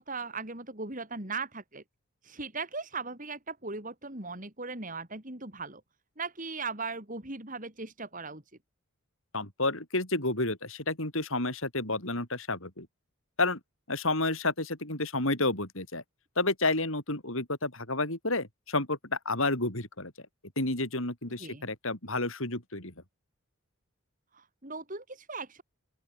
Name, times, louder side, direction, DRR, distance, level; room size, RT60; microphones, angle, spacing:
voice 1, 0.0-1.8 2.2-5.8 6.2-8.4 21.4-21.7 24.3-25.6, right 4 dB, 35° right, 3.8 m, -38 dB
voice 2, 9.3-12.9 13.4-13.6 13.9-16.0 16.4-20.1 20.6-22.9, left 2 dB, 65° left, 6.6 m, -30 dB
open air
head